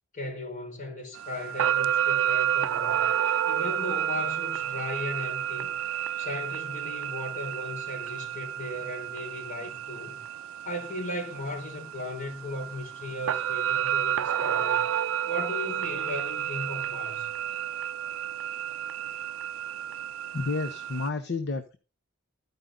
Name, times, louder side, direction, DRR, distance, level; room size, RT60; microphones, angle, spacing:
voice 1, 0.1-3.1 3.5-5.7 6.2-10.2 10.6-14.9 15.3-17.3, left 1 dB, 40° left, 4.5 m, -37 dB
sound 1, 1.2-21.1, right 10 dB, 70° right, 0.4 m, -30 dB
voice 2, 20.3-21.8, left 3 dB, 55° left, 0.9 m, -30 dB
14.5 x 5.4 x 3.8 m
head